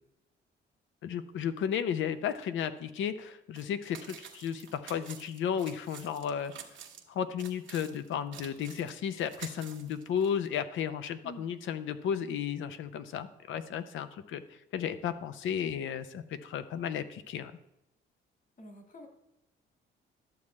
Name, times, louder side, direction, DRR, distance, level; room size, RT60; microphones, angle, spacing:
voice 1, 1.0-6.5 7.1-14.4 14.7-17.5, left 8 dB, 80° left, 11 dB, 0.7 m, -34 dB
sound 1, 3.5-3.7 3.9-7.0 7.4-10.5, right 8 dB, 70° right, 1.2 m, -49 dB
voice 2, 18.6-19.1, equal, 40° left, 4 dB, 1.8 m, -47 dB
11.5 x 7.2 x 3.2 m, 0.88 s
cardioid pair, 90°, 20 cm